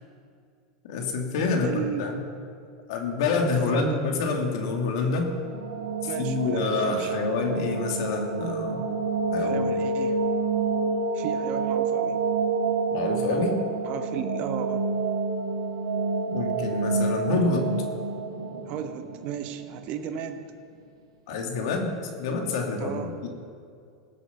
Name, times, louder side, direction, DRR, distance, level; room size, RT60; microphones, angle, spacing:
voice 1, 0.9-2.2 2.9-5.3 6.2-8.8 9.3-9.7 12.9-13.6 16.3-17.7 21.3-23.3, left 3 dB, 70° left, 2 dB, 2.4 m, -27 dB
voice 2, 1.6-2.1 3.6-4.0 6.0-7.2 9.3-10.2 11.1-12.2 13.8-14.8 18.7-20.4 22.8-23.1, right 9 dB, 50° right, 7 dB, 1.0 m, -35 dB
sound 1, 5.3-20.2, right 3 dB, 85° right, 1.7 m, -28 dB
18.0 x 8.2 x 5.8 m, 2.3 s
hypercardioid pair, 105°, 3 cm